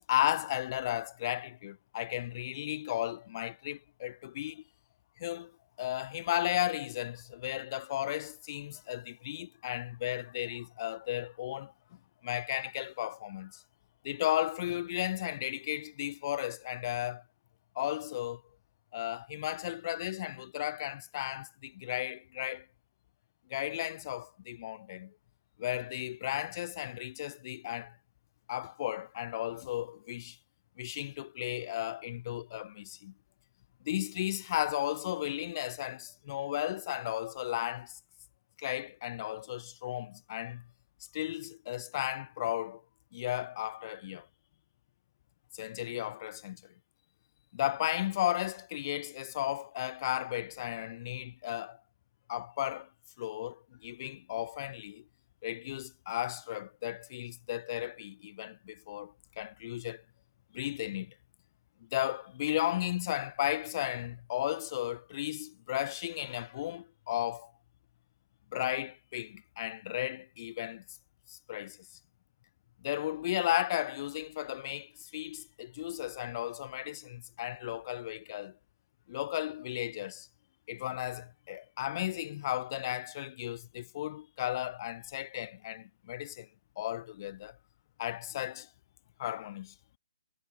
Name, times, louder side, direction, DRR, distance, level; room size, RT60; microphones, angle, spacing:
voice 1, 0.0-4.6 5.2-5.5 5.8-11.7 12.2-13.6 14.0-17.2 17.8-18.4 18.9-22.7 23.5-25.1 25.6-28.0 28.5-30.4 30.8-33.1 33.8-38.0 38.6-40.6 41.1-42.8 43.1-44.3 45.5-46.6 47.5-51.8 52.3-52.9 53.2-55.0 55.4-60.0 60.5-61.1 61.9-67.5 68.5-70.8 71.3-71.8 72.8-78.6 79.1-80.3 80.7-86.5 86.8-87.6 88.0-88.7 89.2-89.7, left 13 dB, 35° left, 0.3 m, -35 dB
figure-of-eight pair, 140°, 3 cm